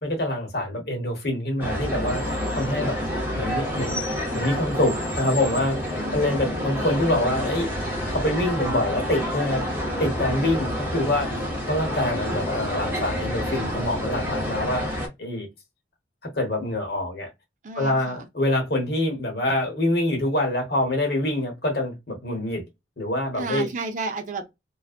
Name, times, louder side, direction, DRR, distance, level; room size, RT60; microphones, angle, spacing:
voice 1, 0.0-3.0 3.3-4.0 4.3-7.7 8.1-9.6 10.0-11.3 11.7-14.8 15.2-15.5 16.2-17.3 17.7-22.6 23.0-23.7, left 1 dB, 55° left, 1.0 m, -25 dB
sound 1, 1.6-15.1, equal, 10° right, 0.7 m, -28 dB
voice 2, 5.9-6.4 17.6-18.2 23.4-24.5, right 3 dB, 45° right, 0.5 m, -32 dB
2.4 x 2.2 x 2.4 m
head